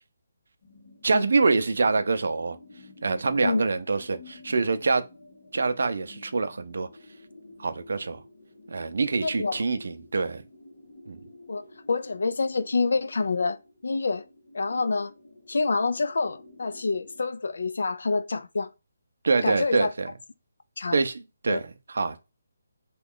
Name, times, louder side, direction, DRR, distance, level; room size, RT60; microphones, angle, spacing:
sound 1, 0.6-17.3, left 2 dB, 45° left, 1.2 m, -51 dB
voice 1, 1.0-2.6 3.0-5.0 5.5-6.9 7.6-8.2 8.7-10.4 11.1-11.2 19.2-20.1 20.9-22.3, right 4 dB, 60° right, 0.5 m, -25 dB
voice 2, 9.2-9.6 11.5-13.6 13.8-14.2 14.5-15.1 15.5-18.7 19.4-19.9 20.8-21.0 21.5-21.6, left 4 dB, 60° left, 0.4 m, -27 dB
3.0 x 2.3 x 3.7 m
hypercardioid pair, 175°, 0 cm